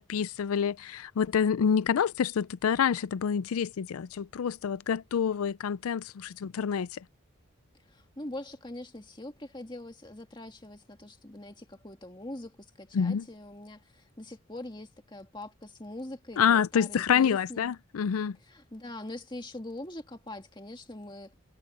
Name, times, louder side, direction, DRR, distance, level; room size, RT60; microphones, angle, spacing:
voice 1, 0.0-6.9 12.9-13.2 16.4-18.4, left 7 dB, 90° left, 0.4 m, -27 dB
voice 2, 7.8-17.7 18.4-21.3, left 1 dB, 20° left, 2.0 m, -43 dB
head